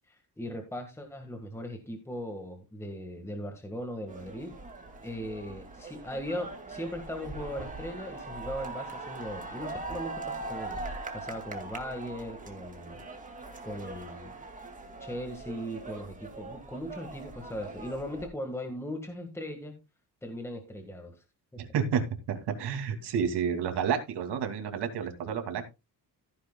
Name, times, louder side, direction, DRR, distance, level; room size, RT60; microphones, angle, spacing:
voice 1, 0.1-4.5 5.0-13.0 13.6-14.4 15.0-19.7 20.2-21.2, equal, 5° left, 4 dB, 1.7 m, -39 dB
sound 1, 4.1-18.3, right 3 dB, 20° right, 2.3 m, -41 dB
voice 2, 21.6-22.0 22.3-25.7, right 7 dB, 85° right, 6 dB, 2.6 m, -30 dB
15.0 x 9.6 x 2.3 m, 0.26 s
wide cardioid pair, 160°, 39 cm